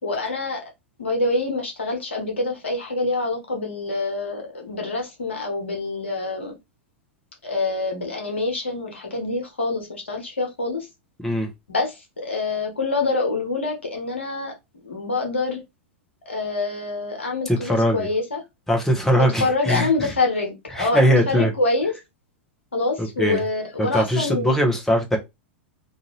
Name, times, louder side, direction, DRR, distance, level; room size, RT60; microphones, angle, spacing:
voice 1, 0.0-0.7 1.0-6.5 7.4-10.9 11.7-14.5 14.8-15.6 16.3-18.4 19.1-21.9 22.7-24.6, left 3 dB, 75° left, 1.1 m, -26 dB
voice 2, 17.5-18.1 18.7-20.1 20.7-21.5 23.0-23.4 23.8-25.2, equal, 5° left, 0.8 m, -21 dB
2.7 x 2.5 x 3.0 m
figure-of-eight pair, 95°, 6 cm